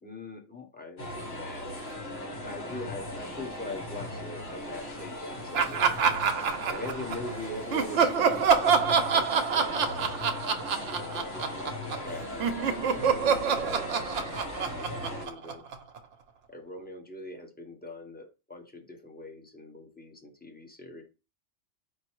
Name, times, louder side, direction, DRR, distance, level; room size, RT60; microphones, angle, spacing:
voice 1, 0.0-1.9 2.4-6.1 6.6-10.1 10.8-14.2 14.8-15.6 16.5-21.0, left 2 dB, 10° left, 1 dB, 0.8 m, -43 dB
sound 1, 1.0-15.3, left 1 dB, 55° left, 1.3 m, -38 dB
Laughter, 5.5-7.3 7.7-12.1 12.4-16.0, right 6 dB, 75° right, 0.9 m, -26 dB
4.7 x 2.1 x 4.5 m, 0.29 s
omnidirectional pair, 1.3 m